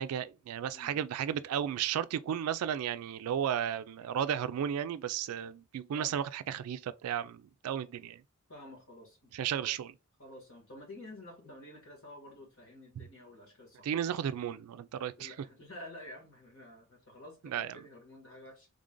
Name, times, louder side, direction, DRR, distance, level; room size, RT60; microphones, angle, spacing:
voice 1, 0.0-8.2 9.3-9.9 13.8-15.3 17.4-17.8, right 9 dB, 90° right, 0.3 m, -34 dB
voice 2, 8.5-9.7 10.2-14.2 15.2-18.7, left 1 dB, 65° left, 1.7 m, -50 dB
3.6 x 2.5 x 3.7 m
head